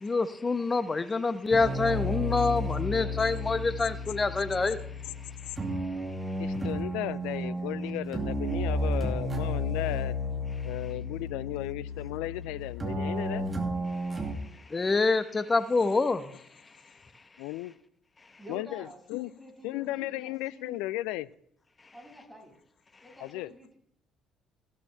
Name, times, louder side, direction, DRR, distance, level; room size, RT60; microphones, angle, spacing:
voice 1, 0.0-4.8 14.7-16.3, left 3 dB, 25° left, 13 dB, 1.0 m, -26 dB
sound 1, 1.5-14.3, left 1 dB, 25° right, 2.4 m, -32 dB
voice 2, 6.4-10.2 10.6-13.5 17.4-17.7 18.5-19.3 19.6-21.3 23.2-23.5, left 17 dB, 65° left, 19 dB, 0.4 m, -35 dB
voice 3, 18.4-20.8 21.9-22.5 23.0-23.8, left 1 dB, 5° left, 0 dB, 6.5 m, -48 dB
15.0 x 13.0 x 3.4 m, 0.69 s
figure-of-eight pair, 50°, 0 cm